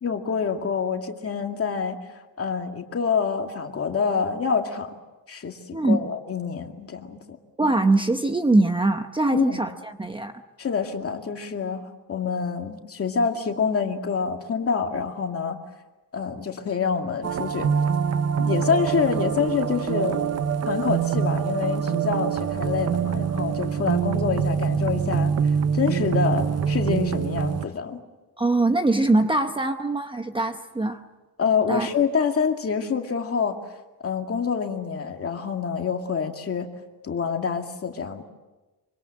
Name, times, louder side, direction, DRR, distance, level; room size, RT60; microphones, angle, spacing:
voice 1, 0.0-2.0 2.4-4.9 5.3-7.4 9.3-9.7 10.6-15.6 16.1-17.7 18.4-20.3 20.7-28.0 31.4-33.6 34.0-36.7 37.0-38.2, left 6 dB, 35° left, 4 dB, 2.3 m, -26 dB
voice 2, 5.7-6.0 7.6-10.3 28.4-31.0 31.7-31.9, right 2 dB, 15° right, 6 dB, 0.9 m, -22 dB
sound 1, 17.2-27.7, right 7 dB, 40° right, 0.8 m, -25 dB
25.5 x 25.0 x 7.5 m, 1.2 s
cardioid pair, 160°, 39 cm